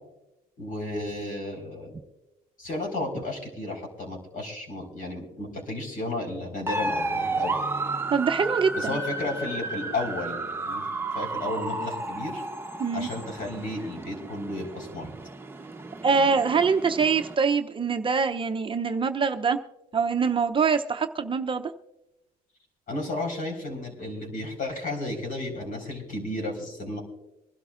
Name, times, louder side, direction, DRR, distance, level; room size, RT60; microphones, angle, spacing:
voice 1, 0.6-1.9 2.6-7.5 8.7-10.8 11.1-12.4 12.9-15.1 22.9-27.0, left 2 dB, 55° left, 3 dB, 4.7 m, -33 dB
sound 1, 6.7-17.4, right 2 dB, 15° right, 0.9 m, -33 dB
voice 2, 8.1-9.0 12.8-13.1 16.0-19.6 19.9-21.7, right 5 dB, 30° right, 7 dB, 0.6 m, -24 dB
25.0 x 12.0 x 2.5 m, 0.94 s
cardioid pair, 110°, 17 cm